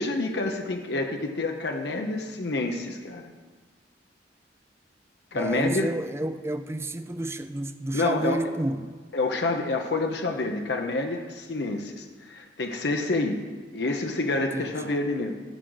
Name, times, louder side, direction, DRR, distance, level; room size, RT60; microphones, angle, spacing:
voice 1, 0.0-3.3 5.3-5.9 7.9-8.4 9.1-13.4 13.7-15.3, left 2 dB, 65° left, 0.8 m, -28 dB
voice 2, 5.4-9.0 14.5-15.0, right 1 dB, 15° right, 0.4 m, -30 dB
15.5 x 6.3 x 4.0 m
head